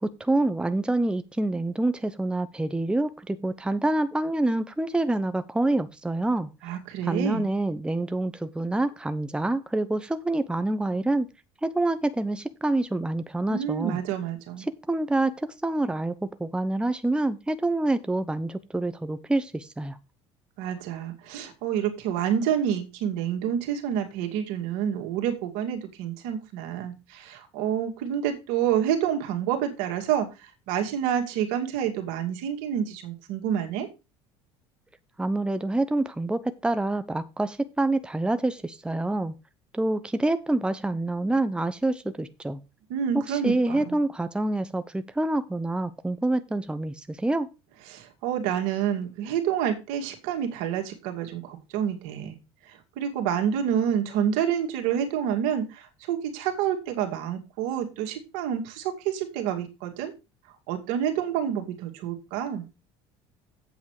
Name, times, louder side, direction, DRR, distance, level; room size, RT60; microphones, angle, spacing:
voice 1, 0.0-6.5 7.0-11.3 11.6-14.0 14.6-20.0 35.2-39.3 39.7-42.6 43.1-47.5, right 2 dB, 5° right, 11 dB, 0.8 m, -27 dB
voice 2, 6.6-7.4 13.5-14.6 20.6-30.3 30.7-33.9 42.9-44.0 47.9-52.4 52.7-60.1 60.7-62.6, right 9 dB, 75° right, 4 dB, 2.4 m, -28 dB
8.3 x 7.2 x 4.8 m, 0.28 s
hypercardioid pair, 80°, 14 cm